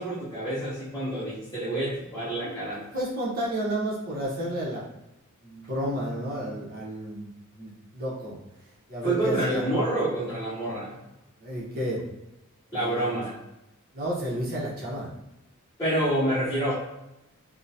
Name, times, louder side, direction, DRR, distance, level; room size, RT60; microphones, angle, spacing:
voice 1, 0.0-2.8 9.0-10.9 12.7-13.3 15.8-16.7, right 1 dB, 15° left, -10 dB, 0.8 m, -27 dB
voice 2, 2.9-4.8 5.4-7.3 7.6-8.4 8.9-9.7 10.9-11.0 11.4-12.0 12.7-13.0 13.9-15.1, equal, 45° right, -5 dB, 0.9 m, -31 dB
3.7 x 2.1 x 2.7 m, 0.93 s
head